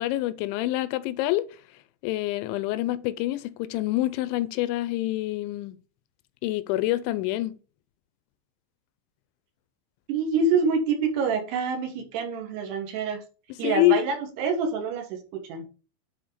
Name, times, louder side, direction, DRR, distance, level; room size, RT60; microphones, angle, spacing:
voice 1, 0.0-1.5 2.0-5.8 6.4-7.5 13.6-14.0, left 16 dB, 85° left, 2.9 m, -26 dB
voice 2, 10.1-13.2 13.6-15.2 15.5-15.7, right 4 dB, 70° right, 3.3 m, -26 dB
10.0 x 4.4 x 4.9 m
omnidirectional pair, 5.4 m